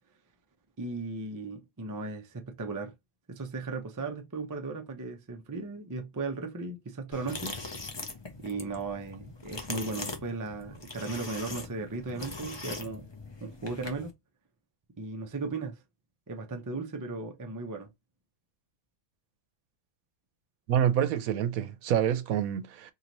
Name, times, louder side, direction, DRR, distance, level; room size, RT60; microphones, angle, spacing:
voice 1, 0.8-2.9 3.3-7.6 8.4-13.1 13.4-14.1 15.0-15.8 16.3-17.9, right 3 dB, 30° right, 0.3 m, -36 dB
sound 1, 7.1-14.1, left 3 dB, 35° left, 0.4 m, -41 dB
voice 2, 20.7-22.9, right 10 dB, 80° right, 1.1 m, -27 dB
3.0 x 2.8 x 3.9 m
omnidirectional pair, 1.5 m